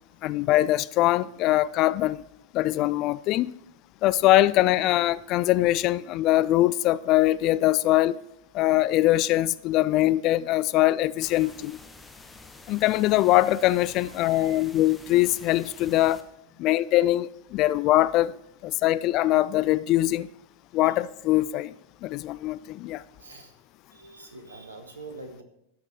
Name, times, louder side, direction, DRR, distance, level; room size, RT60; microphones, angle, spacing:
voice 1, 0.2-2.2 2.5-3.5 4.0-8.2 8.5-11.8 12.7-16.2 16.6-20.3 20.7-21.7 22.0-23.0, left 15 dB, 40° left, 0.3 m, -22 dB
sound 1, 11.2-16.2, left 3 dB, 10° left, 1.0 m, -48 dB
voice 2, 14.0-14.7 16.5-16.7 20.8-21.0 23.2-23.5 23.9-25.4, right 3 dB, 75° right, 1.7 m, -45 dB
12.5 x 5.3 x 6.0 m
figure-of-eight pair, 90°, 0 cm